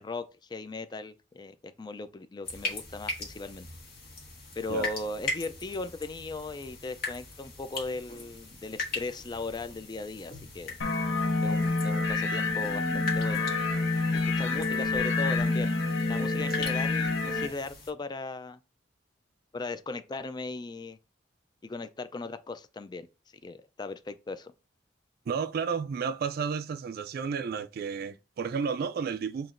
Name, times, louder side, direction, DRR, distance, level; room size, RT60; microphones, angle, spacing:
voice 1, 0.0-3.7 4.5-10.8 11.4-13.5 14.1-15.7 16.1-18.6 19.5-21.0 21.6-23.1 23.4-24.5, left 3 dB, 25° left, 0.3 m, -38 dB
sound 1, 2.4-17.9, left 2 dB, 50° left, 1.4 m, -40 dB
sound 2, 10.8-17.5, left 3 dB, 85° left, 0.9 m, -27 dB
voice 2, 25.3-29.5, right 6 dB, 55° right, 0.3 m, -32 dB
7.2 x 2.9 x 2.5 m
head